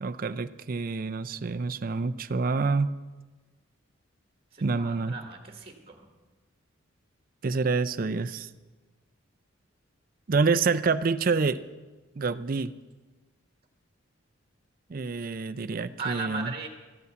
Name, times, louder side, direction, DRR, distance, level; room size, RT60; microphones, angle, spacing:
voice 1, 0.0-2.9 4.6-5.1 7.4-8.5 10.3-11.6 12.2-12.7 14.9-16.5, right 4 dB, 45° right, 12 dB, 0.4 m, -27 dB
voice 2, 4.5-6.1 16.0-16.7, right 4 dB, 25° right, 3 dB, 1.5 m, -37 dB
13.5 x 8.3 x 8.0 m, 1.3 s
head